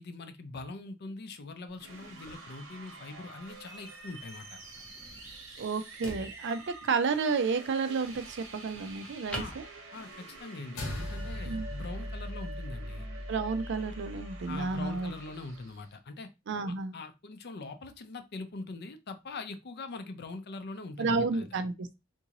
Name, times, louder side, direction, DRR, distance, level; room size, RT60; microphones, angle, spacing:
voice 1, 0.0-4.6 9.3-9.5 9.9-13.1 14.5-16.3 16.7-21.5, left 3 dB, 55° left, 0.5 m, -42 dB
sound 1, 1.7-10.4, equal, 5° left, 0.8 m, -48 dB
sound 2, 1.8-15.9, right 2 dB, 75° right, 1.0 m, -48 dB
voice 2, 5.6-9.6 11.5-11.7 13.3-15.1 16.5-16.9 21.0-22.0, right 4 dB, 60° right, 0.4 m, -31 dB
sound 3, 10.8-15.3, equal, 85° left, 1.1 m, -39 dB
3.7 x 2.6 x 2.9 m
head